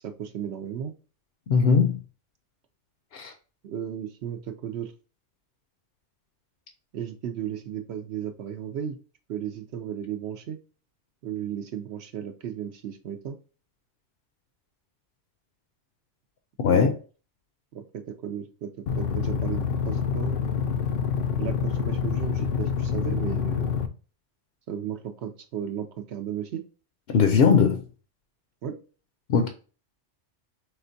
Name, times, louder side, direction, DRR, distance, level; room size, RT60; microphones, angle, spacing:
voice 1, 0.0-0.9 3.6-4.9 6.9-9.0 9.3-10.6 11.2-13.4 16.7-17.0 17.7-20.4 21.4-23.8 24.7-26.6 28.6-28.8, right 9 dB, 65° right, 0.8 m, -34 dB
voice 2, 1.5-2.0 3.1-3.3 16.6-16.9 27.1-27.8 29.3-29.5, left 6 dB, 60° left, 0.7 m, -19 dB
sound 1, 18.9-23.9, left 7 dB, 90° left, 1.0 m, -27 dB
5.0 x 3.3 x 2.6 m
omnidirectional pair, 1.2 m